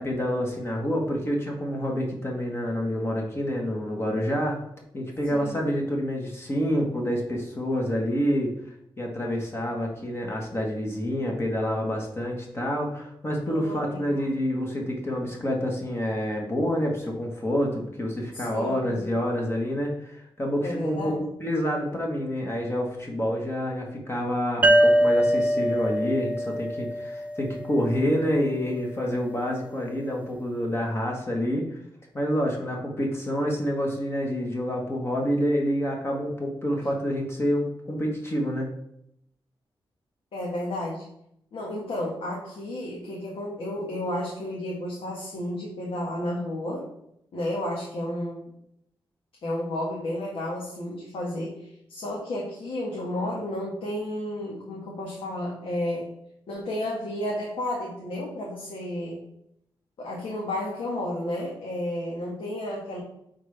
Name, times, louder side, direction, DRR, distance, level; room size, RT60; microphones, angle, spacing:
voice 1, 0.0-4.6 4.9-8.5 9.0-21.1 21.4-31.8 32.1-38.7, equal, 25° left, 0 dB, 1.4 m, -28 dB
voice 2, 5.2-5.6 13.4-14.3 18.3-19.0 20.6-21.2 40.3-41.0 41.5-46.9 47.3-48.4 49.4-56.1 56.5-59.2 60.0-63.0, left 1 dB, 80° left, -4 dB, 1.6 m, -32 dB
sound 1, 24.6-28.1, equal, 15° right, 0.5 m, -23 dB
8.9 x 3.9 x 3.4 m, 0.74 s
wide cardioid pair, 120°, 9 cm